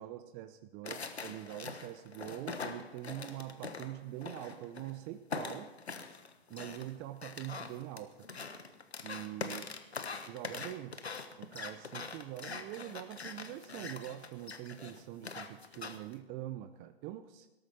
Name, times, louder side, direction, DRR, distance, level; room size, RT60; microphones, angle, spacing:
voice 1, 0.0-5.7 6.5-8.5 9.0-9.7 10.3-11.0 11.4-17.5, right 14 dB, 30° right, 10 dB, 0.7 m, -44 dB
sound 1, 0.8-4.9 5.3-16.1, left 4 dB, 85° left, 1.4 m, -43 dB
18.5 x 13.5 x 4.4 m, 1.0 s
figure-of-eight pair, 110°, 32 cm